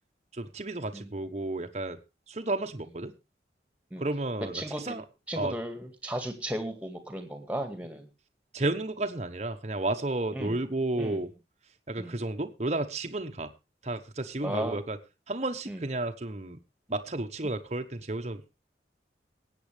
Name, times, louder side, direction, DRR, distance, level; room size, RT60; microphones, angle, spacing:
voice 1, 0.3-2.0 2.3-3.1 4.0-5.0 5.3-5.5 8.5-11.3 11.9-13.5 13.8-15.0 15.3-16.6 16.9-18.4, right 2 dB, 40° right, 7 dB, 1.1 m, -32 dB
voice 2, 4.5-5.0 5.3-8.1 10.3-10.6 11.0-11.2 12.0-12.2 14.4-14.8 15.7-15.8, right 1 dB, 10° right, 7 dB, 2.0 m, -35 dB
20.0 x 8.6 x 3.4 m, 0.27 s
head